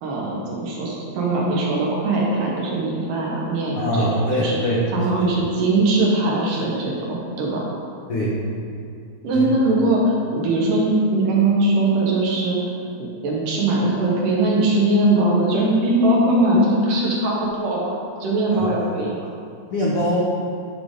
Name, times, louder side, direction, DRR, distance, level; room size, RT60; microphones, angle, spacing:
voice 1, 0.0-4.6 4.9-7.6 9.2-12.7 13.0-19.1, right 2 dB, 70° right, -3 dB, 2.7 m, -21 dB
voice 2, 3.8-5.4 8.1-8.3 9.3-9.4 18.5-18.7 19.7-20.2, equal, 85° left, -7 dB, 1.2 m, -23 dB
13.5 x 4.9 x 3.7 m, 2.4 s
omnidirectional pair, 4.3 m